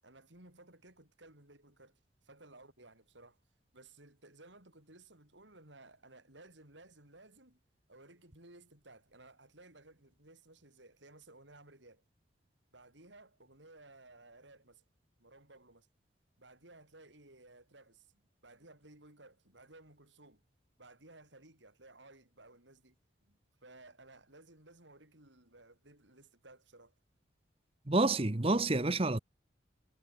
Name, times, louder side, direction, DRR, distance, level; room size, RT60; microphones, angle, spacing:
voice 1, 0.0-3.4 3.7-7.6 7.9-12.0 12.7-14.8 15.2-15.9 16.4-20.4 20.8-26.9, right 2 dB, 75° right, 7.6 m, -58 dB
voice 2, 27.9-29.2, right 2 dB, 30° right, 1.0 m, -28 dB
head